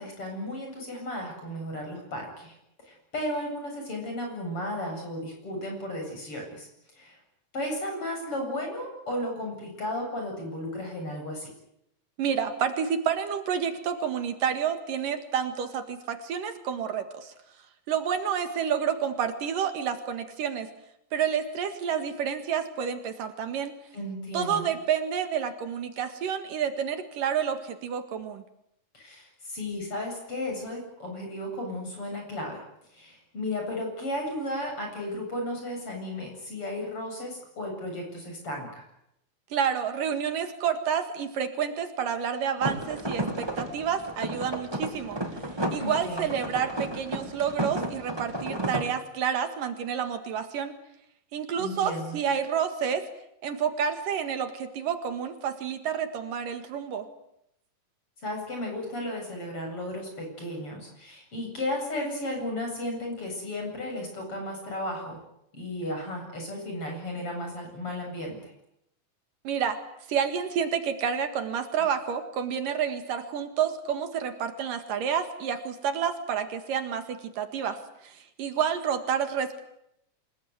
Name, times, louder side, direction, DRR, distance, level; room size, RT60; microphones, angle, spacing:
voice 1, 0.0-2.5 2.8-6.7 7.0-7.2 7.5-11.5 23.9-24.7 28.9-32.6 32.9-38.8 45.8-46.3 51.6-52.2 58.2-65.2 65.5-68.5, left 1 dB, 40° left, 2 dB, 9.0 m, -34 dB
voice 2, 12.2-17.3 17.9-20.7 21.1-23.7 24.3-28.4 39.5-45.2 45.7-50.7 51.3-53.1 53.4-57.1 69.4-69.8 70.1-79.6, right 8 dB, 70° right, 8 dB, 3.4 m, -29 dB
sound 1, 42.6-48.8, right 1 dB, 10° right, 2.3 m, -33 dB
27.5 x 19.0 x 9.6 m, 0.79 s
omnidirectional pair, 4.0 m